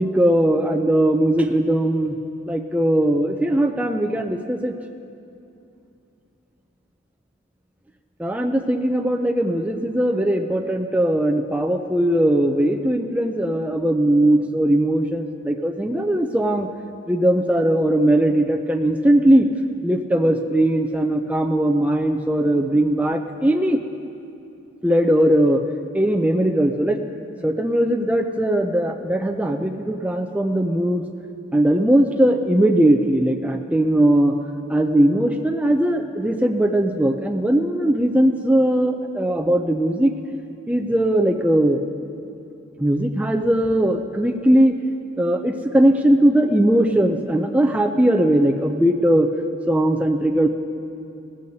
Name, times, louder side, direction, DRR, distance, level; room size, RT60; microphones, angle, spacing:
voice 1, 0.0-2.2 2.5-4.7 8.2-16.7 17.1-19.5 19.8-23.8 24.8-25.6 25.9-27.0 27.4-31.0 31.5-34.4 34.7-40.1 40.7-41.8 42.8-44.7 45.2-49.3 49.7-50.5, right 1 dB, 5° right, 3 dB, 0.4 m, -19 dB
17.5 x 15.0 x 2.8 m, 2.7 s
head